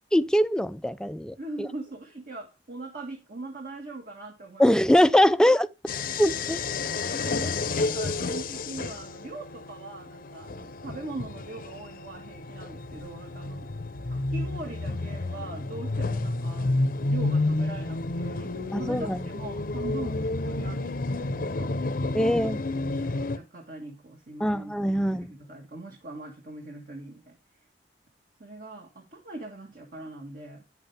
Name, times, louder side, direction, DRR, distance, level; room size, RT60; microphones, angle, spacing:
voice 1, 0.1-1.3 4.6-5.7 6.2-6.6 18.7-19.2 22.1-22.6 24.4-25.3, equal, 5° left, 0.4 m, -22 dB
voice 2, 1.4-4.9 7.1-13.7 14.1-22.4 22.8-27.4 28.4-30.6, right 2 dB, 55° right, 1.8 m, -41 dB
sound 1, 5.9-23.4, left 2 dB, 55° left, 0.7 m, -30 dB
9.6 x 8.0 x 3.4 m
head